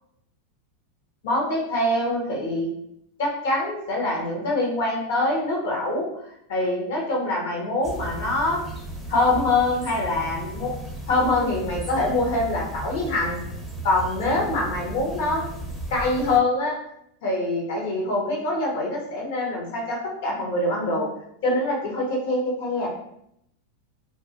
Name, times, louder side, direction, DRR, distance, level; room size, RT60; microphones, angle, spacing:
voice 1, 1.2-2.7 3.2-6.0 6.5-8.6 9.1-10.7 11.1-13.4 13.8-15.4 15.9-16.8 17.2-21.1 21.4-22.9, left 2 dB, 70° left, -2 dB, 1.0 m, -24 dB
sound 1, 7.8-16.4, right 1 dB, ahead, 0.6 m, -35 dB
2.4 x 2.1 x 2.8 m, 0.75 s
hypercardioid pair, 115°, 0 cm